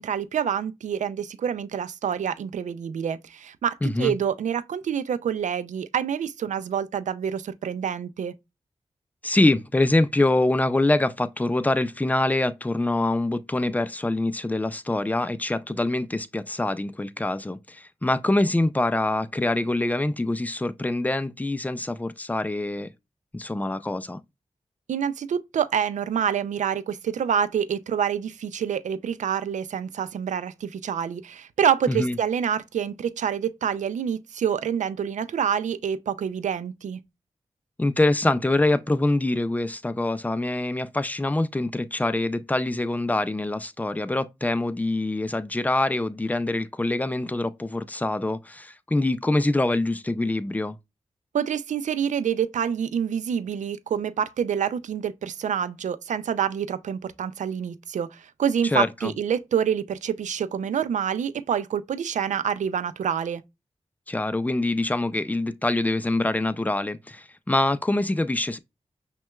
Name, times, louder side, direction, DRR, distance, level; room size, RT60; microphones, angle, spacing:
voice 1, 0.0-8.3 24.9-37.0 51.3-63.4, right 8 dB, 85° right, 0.4 m, -27 dB
voice 2, 3.8-4.2 9.2-22.9 23.3-24.2 31.9-32.2 37.8-50.8 58.6-59.1 64.1-68.6, left 2 dB, 15° left, 0.4 m, -25 dB
5.9 x 2.2 x 2.3 m
cardioid pair, 50°, 12 cm